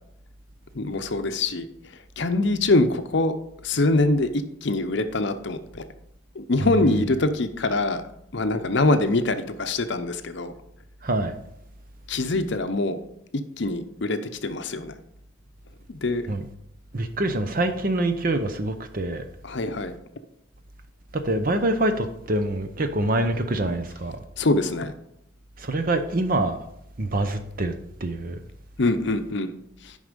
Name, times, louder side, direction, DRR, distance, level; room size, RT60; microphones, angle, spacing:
voice 1, 0.7-1.7 2.2-3.3 3.6-4.3 4.6-5.8 6.4-8.0 8.3-10.5 12.1-13.0 13.6-15.0 15.9-16.3 19.4-19.9 24.4-24.9 28.8-29.5 29.8-29.9, left 2 dB, 55° left, 0.7 m, -24 dB
voice 2, 6.6-7.0 11.0-11.4 16.3-16.5 16.9-19.2 21.1-24.2 25.6-26.6 27.0-27.7 28.0-28.4, right 2 dB, 45° right, 0.7 m, -25 dB
9.7 x 5.5 x 5.2 m
head